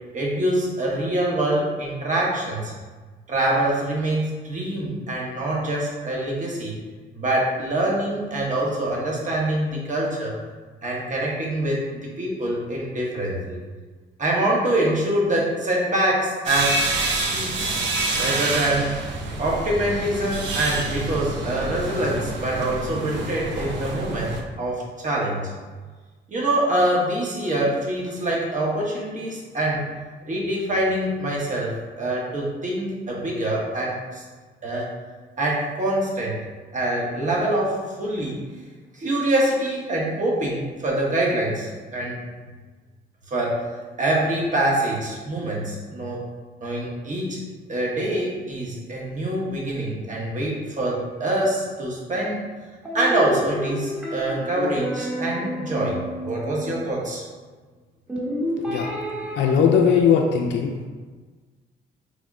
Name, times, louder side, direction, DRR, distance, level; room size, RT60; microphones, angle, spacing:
voice 1, 0.1-2.7 3.3-6.7 7.1-10.3 10.8-13.6 14.2-16.8 17.3-17.8 18.2-18.9 19.4-25.5 26.3-29.8 30.3-34.2 34.6-34.9 35.4-36.4 36.7-38.4 38.9-42.2 43.3-43.7 44.0-46.2 46.6-47.4 47.7-52.5 52.9-55.9 56.2-57.2, right 1 dB, 40° right, -4 dB, 1.0 m, -25 dB
sound 1, 16.4-24.4, right 2 dB, 65° right, 0.6 m, -27 dB
sound 2, 52.8-57.1 58.1-60.0, left 1 dB, 5° right, 0.9 m, -30 dB
voice 2, 59.4-60.9, left 7 dB, 65° left, 1 dB, 0.4 m, -19 dB
3.5 x 2.1 x 3.6 m, 1.4 s
cardioid pair, 90°, 20 cm